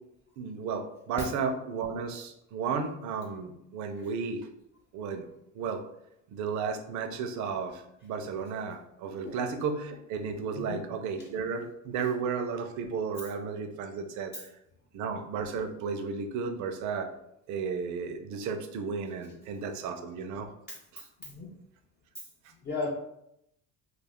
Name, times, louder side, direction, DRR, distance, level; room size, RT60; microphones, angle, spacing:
voice 1, 0.4-4.4 4.9-5.2 5.5-5.8 6.3-14.4 14.9-17.1 17.5-20.5 20.9-21.0, right 5 dB, 60° right, 6 dB, 0.5 m, -33 dB
voice 2, 4.0-4.1 9.2-9.4 10.5-10.8 21.2-21.5 22.6-22.9, left 3 dB, 35° left, -2 dB, 0.4 m, -35 dB
2.4 x 2.4 x 3.5 m, 0.80 s
cardioid pair, 130°, 32 cm